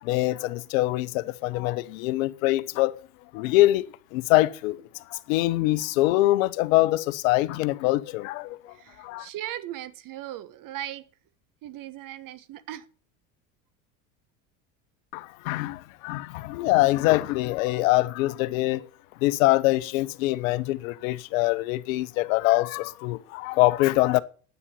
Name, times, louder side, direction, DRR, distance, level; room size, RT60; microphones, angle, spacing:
voice 1, 0.0-2.9 3.3-3.9 4.1-4.8 5.1-8.7 9.0-9.3 15.1-18.9 19.2-24.2, left 18 dB, 70° left, 0.9 m, -24 dB
voice 2, 8.7-11.0 11.6-12.9, right 12 dB, 50° right, 1.3 m, -38 dB
9.8 x 9.0 x 6.8 m
hypercardioid pair, 80°, 42 cm